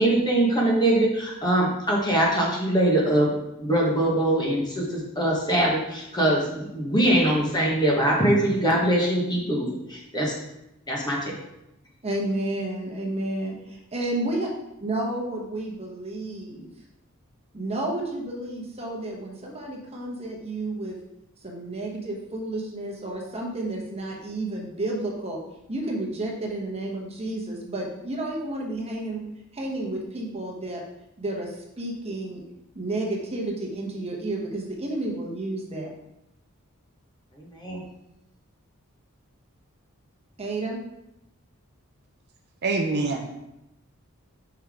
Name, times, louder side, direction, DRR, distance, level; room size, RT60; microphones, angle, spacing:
voice 1, 0.0-3.3 3.6-10.3 10.9-11.3 37.3-37.8, right 1 dB, 20° left, -3 dB, 1.3 m, -23 dB
voice 2, 12.0-14.5 14.8-16.7 17.5-21.0 21.4-25.4 25.7-29.2 29.5-30.8 31.2-32.4 32.7-35.9 40.4-40.8, right 2 dB, 30° right, -1 dB, 1.1 m, -31 dB
voice 3, 42.6-43.3, right 3 dB, 50° right, 2 dB, 0.7 m, -25 dB
5.8 x 5.4 x 3.6 m, 0.87 s
head